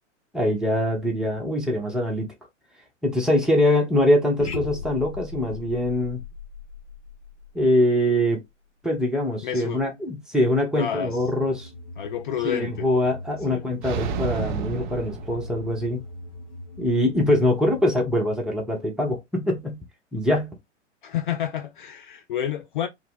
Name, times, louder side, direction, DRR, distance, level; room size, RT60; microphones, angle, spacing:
voice 1, 0.3-2.3 3.0-6.2 7.5-8.4 8.8-11.7 12.4-16.0 16.8-19.8 20.1-20.5, left 1 dB, ahead, 0.7 m, -23 dB
sound 1, 4.4-8.5, left 4 dB, 65° left, 1.2 m, -38 dB
voice 2, 9.4-9.8 10.7-11.2 12.0-12.9 13.5-13.6 21.0-22.9, left 10 dB, 45° left, 0.4 m, -29 dB
sound 2, 11.0-17.9, left 1 dB, 30° left, 0.9 m, -41 dB
sound 3, 13.8-16.0, right 6 dB, 40° right, 0.5 m, -31 dB
3.2 x 2.2 x 3.5 m
figure-of-eight pair, 105°, 36 cm